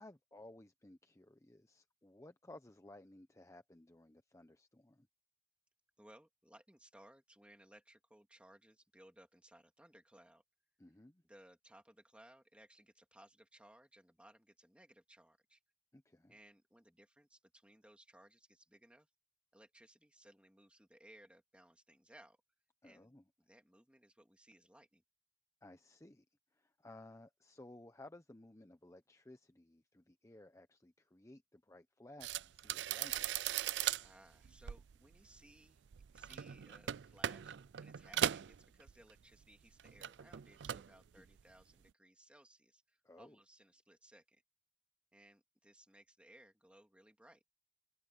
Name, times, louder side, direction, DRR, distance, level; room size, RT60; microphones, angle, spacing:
voice 1, 0.0-5.1 10.8-11.2 15.9-16.3 22.8-23.2 25.6-26.2 26.5-33.3 41.1-41.2 43.0-43.4, left 1 dB, 15° left, 0.8 m, -58 dB
voice 2, 6.0-10.4 11.2-15.6 16.3-19.1 19.5-22.4 22.8-23.1 23.4-25.0 34.0-35.8 36.1-44.4 45.1-47.4, right 1 dB, 5° right, 2.5 m, -63 dB
sound 1, 32.2-39.4 39.7-41.0 41.3-41.6, right 10 dB, 75° right, 0.4 m, -39 dB
head